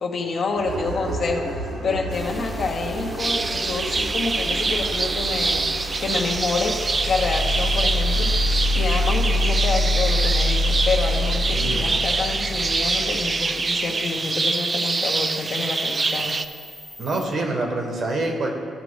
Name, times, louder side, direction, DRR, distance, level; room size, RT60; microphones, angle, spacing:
voice 1, 0.0-5.7 6.0-6.8 7.0-8.3 8.7-16.3, left 3 dB, 50° left, 1 dB, 1.0 m, -28 dB
sound 1, 0.6-6.4, right 1 dB, 70° right, 1.8 m, -33 dB
sound 2, 2.1-17.2, left 1 dB, 10° right, 0.9 m, -27 dB
sound 3, 3.2-16.4, right 3 dB, 30° right, 0.3 m, -25 dB
voice 2, 11.5-11.8 17.0-18.5, right 2 dB, 50° right, 1 dB, 1.4 m, -26 dB
13.5 x 5.0 x 3.3 m, 2.2 s
cardioid pair, 90°, 0 cm